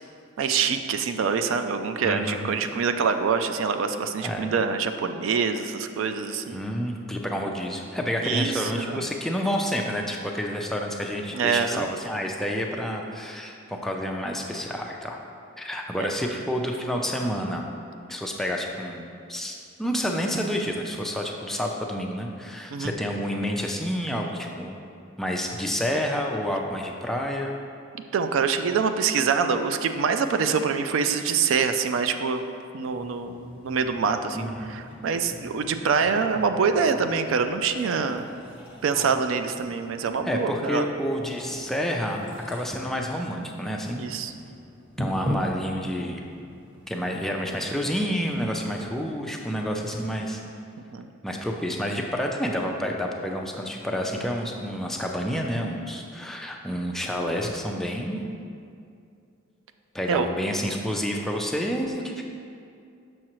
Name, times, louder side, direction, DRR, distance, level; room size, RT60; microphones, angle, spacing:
voice 1, 0.4-6.6 8.2-9.0 11.3-11.9 16.0-16.1 22.7-22.9 28.1-32.4 32.7-33.3 33.6-38.3 38.8-40.8 44.0-44.3 50.9-51.1 60.1-60.3, right 5 dB, 75° right, 8 dB, 0.3 m, -25 dB
voice 2, 2.0-2.5 4.2-4.5 6.5-15.2 15.6-17.7 18.1-24.8 25.2-27.6 34.3-34.7 40.2-44.0 45.0-46.2 46.9-50.4 51.2-58.2 59.9-62.2, equal, ahead, 0 dB, 0.4 m, -29 dB
sound 1, 32.9-49.2, equal, 25° right, 1.5 m, -40 dB
6.4 x 6.1 x 3.0 m, 2.4 s
head